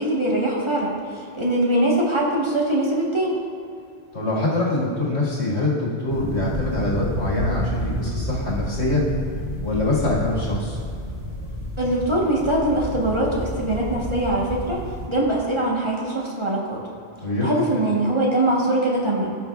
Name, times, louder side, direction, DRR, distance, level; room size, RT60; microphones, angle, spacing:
voice 1, 0.0-3.4 11.8-16.8 17.4-19.3, right 1 dB, 30° right, -4 dB, 1.1 m, -22 dB
voice 2, 4.1-9.0 9.6-10.8 17.2-17.5, left 2 dB, 80° left, -5 dB, 2.1 m, -24 dB
sound 1, 6.1-15.1, equal, 35° left, 2.2 m, -30 dB
16.5 x 5.7 x 2.3 m, 2.4 s
omnidirectional pair, 1.1 m